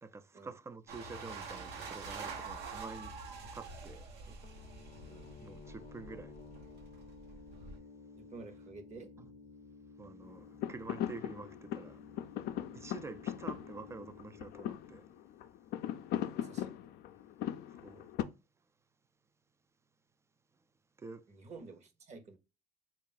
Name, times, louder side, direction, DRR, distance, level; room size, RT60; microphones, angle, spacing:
voice 1, 0.0-3.1 3.5-4.0 5.4-6.3 9.2-9.3 10.0-12.0 12.7-15.0 17.8-18.1 21.0-21.2, right 4 dB, 15° right, 0.3 m, -48 dB
sound 1, 0.9-7.8, right 4 dB, 80° right, 1.0 m, -46 dB
sound 2, 4.4-15.9, left 4 dB, 45° left, 0.7 m, -55 dB
voice 2, 8.1-9.1 16.3-16.7 21.3-22.4, right 4 dB, 45° right, 0.9 m, -51 dB
sound 3, 10.2-18.2, left 11 dB, 75° left, 0.4 m, -39 dB
3.4 x 2.4 x 3.9 m
cardioid pair, 110°, 17 cm